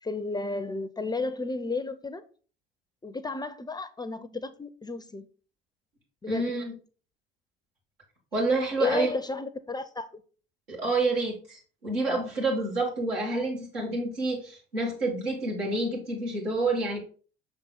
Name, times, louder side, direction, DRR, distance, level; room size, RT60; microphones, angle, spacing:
voice 1, 0.0-2.2 3.0-5.3 6.2-6.6 8.8-10.2, left 3 dB, 15° left, 0.5 m, -33 dB
voice 2, 6.3-6.7 8.3-9.1 10.7-17.0, right 2 dB, 85° right, 2.2 m, -28 dB
5.9 x 4.1 x 3.9 m
hypercardioid pair, 60°, 29 cm